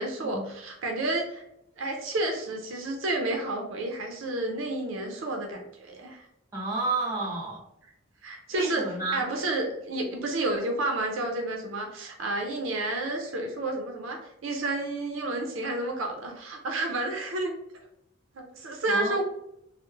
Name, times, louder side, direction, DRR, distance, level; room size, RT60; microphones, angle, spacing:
voice 1, 0.0-1.4 1.8-6.2 8.2-8.8 9.1-17.5 18.4-19.2, right 2 dB, 65° right, 2 dB, 0.4 m, -30 dB
voice 2, 6.5-7.6 8.5-9.2 18.9-19.2, right 3 dB, 15° right, -4 dB, 0.7 m, -31 dB
3.0 x 2.0 x 2.3 m, 0.80 s
head